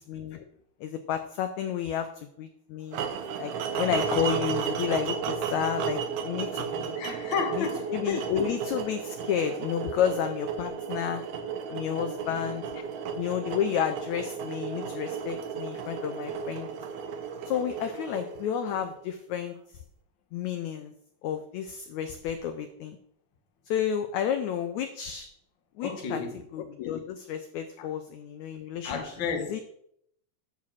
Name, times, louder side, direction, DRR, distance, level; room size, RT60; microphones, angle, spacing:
voice 1, 0.1-0.5 0.8-3.0 3.4-6.9 7.6-11.2 11.7-12.6 13.1-16.7 17.5-19.5 20.3-20.9 21.2-23.0 23.7-25.3 25.8-26.2 26.5-29.0 29.5-29.6, left 9 dB, 75° left, 1.7 m, -31 dB
sound 1, 2.9-19.0, right 6 dB, 70° right, 2.0 m, -34 dB
voice 2, 3.6-4.1 6.9-8.1 10.8-10.9 12.3-12.4 12.7-12.8 25.8-26.4 27.8-27.9 28.8-29.6, left 5 dB, 50° left, 1.4 m, -33 dB
11.5 x 4.5 x 7.3 m
omnidirectional pair, 4.0 m